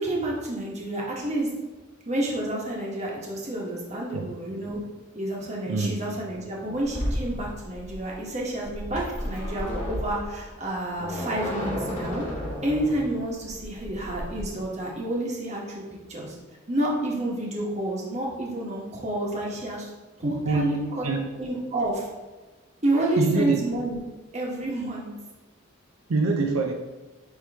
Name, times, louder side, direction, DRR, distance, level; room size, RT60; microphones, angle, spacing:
voice 1, 0.0-1.5 2.0-4.8 5.1-12.2 12.6-15.8 16.1-16.3 16.7-19.9 20.2-21.1 21.4-22.1 22.8-24.0 24.3-25.1, right 1 dB, 30° right, -3 dB, 1.2 m, -29 dB
voice 2, 5.7-6.0 20.2-21.3 23.2-23.6 26.1-26.7, right 3 dB, 75° right, 1 dB, 0.5 m, -25 dB
sound 1, 6.8-14.4, equal, 35° left, 1.5 m, -33 dB
9.0 x 3.0 x 3.4 m, 1.2 s
head